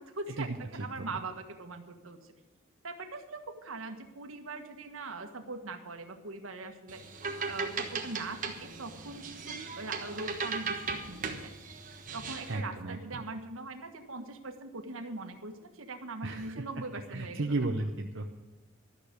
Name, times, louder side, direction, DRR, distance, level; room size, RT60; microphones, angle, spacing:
voice 1, 0.0-2.3 2.8-7.0 7.4-11.5 12.1-17.6, right 3 dB, 80° right, 6 dB, 1.5 m, -41 dB
sound 1, 6.9-12.6, right 4 dB, 40° right, 1.4 m, -37 dB
voice 2, 12.5-13.0 16.2-16.5 17.1-18.4, right 2 dB, 60° right, 3 dB, 0.8 m, -33 dB
13.0 x 6.7 x 9.5 m, 1.1 s
head